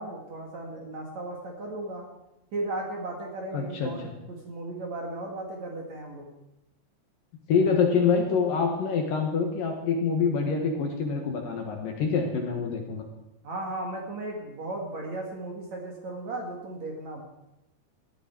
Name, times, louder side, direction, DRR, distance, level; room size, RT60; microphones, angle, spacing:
voice 1, 0.0-2.0 2.5-6.3 13.4-17.2, right 2 dB, 50° right, 0 dB, 2.6 m, -36 dB
voice 2, 3.5-3.9 7.5-13.0, left 5 dB, 60° left, 2 dB, 2.8 m, -26 dB
17.5 x 13.0 x 4.6 m, 0.93 s
omnidirectional pair, 5.1 m